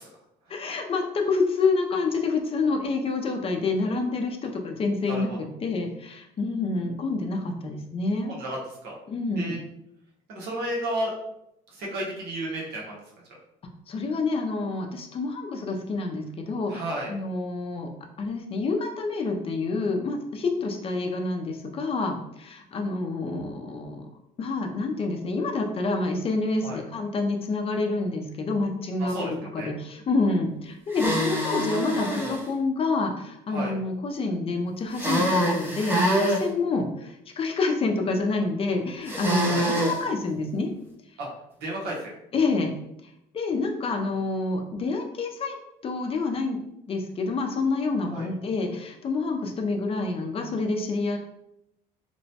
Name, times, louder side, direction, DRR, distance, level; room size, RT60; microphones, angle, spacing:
voice 1, 0.5-8.3 9.1-9.6 13.9-16.8 17.1-17.9 18.2-24.1 24.4-40.7 42.3-42.7 43.3-45.6 45.8-46.6 46.9-51.2, left 3 dB, 35° left, 3 dB, 0.5 m, -28 dB
voice 2, 8.3-8.9 9.4-9.6 10.3-11.1 11.7-13.0 16.7-17.1 26.6-26.8 29.0-29.7 33.5-33.7 39.5-39.7 41.2-41.3 41.6-42.1 48.1-48.3, right 1 dB, 75° right, -3 dB, 0.9 m, -32 dB
sound 1, 30.9-32.4 34.9-36.4 39.1-40.0, equal, 10° right, 0.6 m, -25 dB
2.9 x 2.1 x 2.8 m, 0.81 s
cardioid pair, 110°, 17 cm